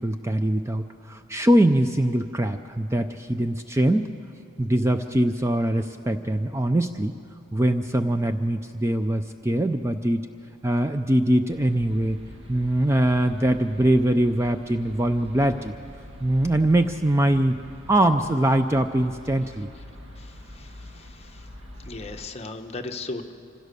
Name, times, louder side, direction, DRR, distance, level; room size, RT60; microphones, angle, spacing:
voice 1, 0.0-4.1 4.6-7.2 7.5-10.2 10.6-12.2 12.5-15.7 16.2-17.6 17.9-19.7, right 1 dB, 15° right, 8 dB, 0.4 m, -22 dB
sound 1, 11.5-22.3, left 1 dB, 70° right, 1.5 m, -45 dB
voice 2, 20.2-21.4 21.9-23.3, left 3 dB, 30° left, 5 dB, 0.9 m, -37 dB
25.0 x 16.0 x 6.8 m, 2.5 s
head